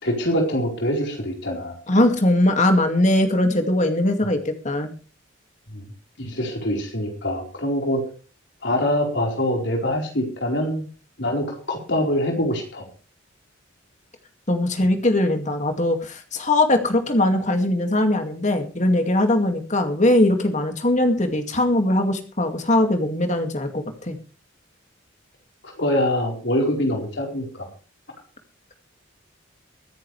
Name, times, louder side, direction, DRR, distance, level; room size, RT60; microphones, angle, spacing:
voice 1, 0.0-1.8 5.7-5.8 6.2-8.0 8.6-10.8 11.2-12.8 25.8-27.7, left 1 dB, 60° left, 1 dB, 4.5 m, -24 dB
voice 2, 1.9-4.9 14.5-24.2, left 1 dB, 35° left, 5 dB, 2.3 m, -20 dB
23.0 x 10.5 x 3.4 m, 0.37 s
head